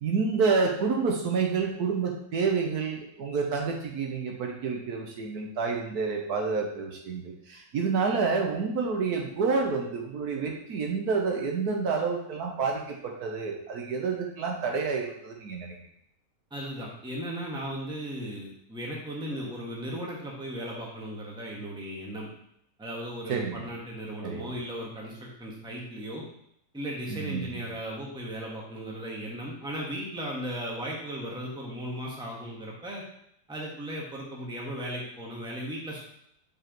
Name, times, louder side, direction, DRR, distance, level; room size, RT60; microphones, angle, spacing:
voice 1, 0.0-15.8 23.3-23.6 24.2-24.5 27.1-27.6, right 5 dB, 70° right, 1 dB, 1.3 m, -29 dB
voice 2, 16.5-22.3 22.8-26.2 26.7-33.0 33.5-36.0, equal, 5° right, -3 dB, 1.1 m, -36 dB
7.3 x 5.0 x 3.0 m, 0.73 s
omnidirectional pair, 1.8 m